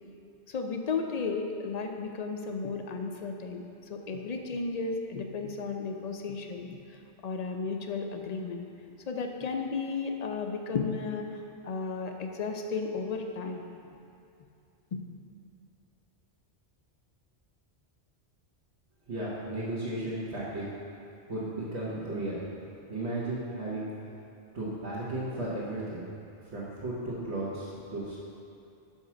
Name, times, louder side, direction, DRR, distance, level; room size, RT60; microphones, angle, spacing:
voice 1, 0.5-3.6 3.9-6.8 7.2-8.7 9.1-11.3 11.6-13.7 14.9-15.0, left 4 dB, 50° left, 4 dB, 0.5 m, -34 dB
voice 2, 19.1-20.7 21.3-22.4 22.9-23.9 24.5-26.2 26.4-28.2, right 1 dB, 75° right, -9 dB, 1.5 m, -34 dB
5.7 x 5.3 x 6.1 m, 2.6 s
omnidirectional pair, 1.2 m